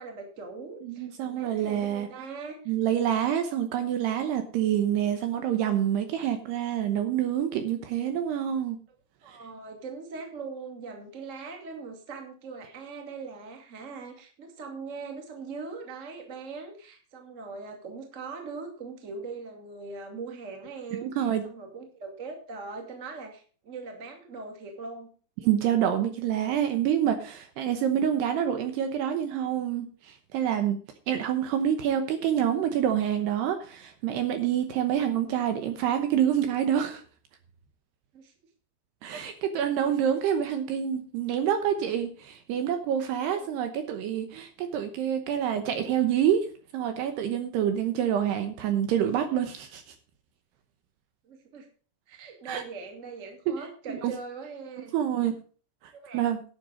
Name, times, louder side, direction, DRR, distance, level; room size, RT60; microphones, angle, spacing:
voice 1, 0.0-2.7 9.2-25.1 38.1-38.3 39.8-40.1 43.3-43.5 51.2-51.7 52.1-54.9 55.9-56.2, right 4 dB, 30° right, 3 dB, 1.5 m, -41 dB
voice 2, 0.8-2.1 2.7-8.8 9.3-9.4 21.0-21.4 25.4-30.8 31.1-37.0 39.0-49.8 52.5-52.6 53.9-54.1 54.9-55.4 56.1-56.4, right 9 dB, 75° right, 7 dB, 2.7 m, -27 dB
12.0 x 8.0 x 5.0 m, 0.40 s
omnidirectional pair, 5.4 m